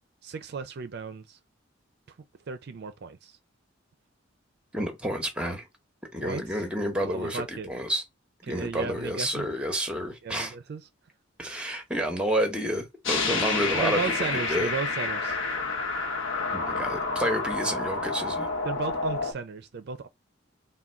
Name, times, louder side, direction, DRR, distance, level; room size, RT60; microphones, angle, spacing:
voice 1, 0.2-1.4 2.5-3.4 6.2-6.6 7.0-7.7 8.5-9.5 10.2-10.8 13.7-15.4 18.6-20.1, right 5 dB, 55° right, 0.4 m, -35 dB
voice 2, 4.7-5.7 6.1-8.0 8.5-10.5 11.4-14.1 14.5-14.7 16.5-18.5, equal, 5° right, 0.8 m, -30 dB
sound 1, 13.0-19.3, left 3 dB, 75° left, 1.0 m, -29 dB
3.6 x 2.2 x 4.3 m
head